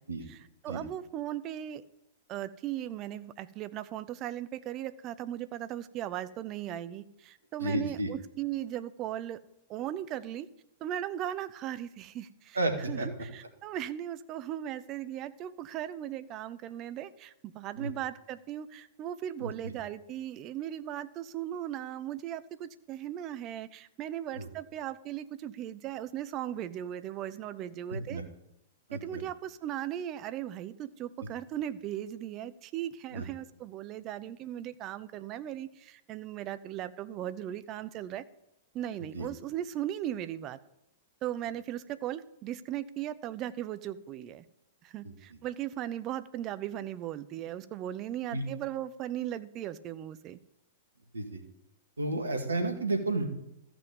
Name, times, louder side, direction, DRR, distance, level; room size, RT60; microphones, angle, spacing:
voice 1, 0.3-1.8 2.3-9.4 9.7-10.5 10.8-28.2 28.9-38.2 38.7-40.6 41.2-44.4 44.8-50.4, right 11 dB, 35° right, 15 dB, 0.7 m, -37 dB
voice 2, 7.6-8.1 12.6-13.1 17.8-17.9 19.4-19.7 24.3-24.5 27.9-28.2 28.9-29.2 33.1-33.2 39.1-39.3 45.0-45.1 48.3-48.4 51.1-51.4 52.0-53.2, right 2 dB, 80° right, 4 dB, 2.0 m, -32 dB
14.0 x 6.1 x 7.1 m, 0.85 s
figure-of-eight pair, 100°, 0 cm